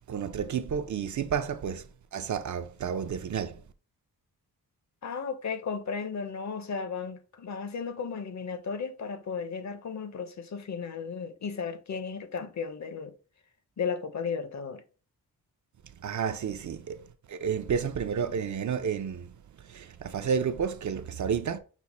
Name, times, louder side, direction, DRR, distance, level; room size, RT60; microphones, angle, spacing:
voice 1, 0.1-3.6 16.0-21.6, right 7 dB, 50° right, 0.5 m, -31 dB
voice 2, 5.0-13.1 13.8-14.8, left 5 dB, 50° left, 0.7 m, -35 dB
6.2 x 2.1 x 4.1 m
wide cardioid pair, 115°, 37 cm